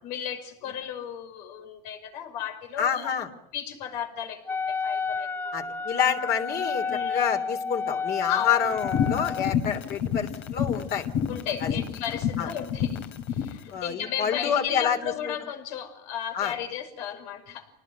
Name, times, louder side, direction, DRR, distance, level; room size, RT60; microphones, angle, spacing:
voice 1, 0.0-3.3 3.5-5.7 6.8-7.3 8.3-8.7 11.3-13.0 13.3-17.7, left 9 dB, 85° left, 5 dB, 5.7 m, -35 dB
voice 2, 2.8-3.3 5.5-11.1 11.6-11.7 12.4-12.5 13.7-15.4 16.3-16.5, left 8 dB, 50° left, 4 dB, 3.3 m, -28 dB
Wind instrument woodwind instrument, 4.5-9.5, left 5 dB, 10° left, 0.9 m, -31 dB
sound 1, 8.7-13.6, left 8 dB, 70° left, 3.0 m, -28 dB
28.0 x 19.5 x 9.5 m, 0.78 s
supercardioid pair, 120°, 21 cm